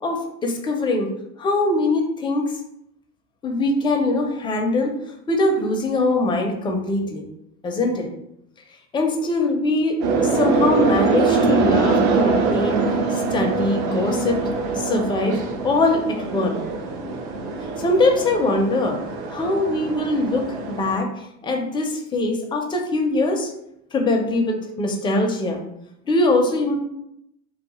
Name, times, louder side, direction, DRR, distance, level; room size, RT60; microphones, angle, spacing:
voice 1, 0.0-1.1 1.4-2.5 3.4-4.9 5.3-7.2 7.6-8.1 8.9-12.8 13.1-14.4 14.8-16.6 17.8-19.0 19.3-21.1 21.4-23.5 23.9-25.6 26.1-26.8, left 2 dB, 15° left, 2 dB, 0.4 m, -22 dB
sound 1, 10.0-21.0, right 3 dB, 65° right, 0.6 m, -23 dB
2.3 x 2.2 x 2.9 m, 0.77 s
hypercardioid pair, 80°, 37 cm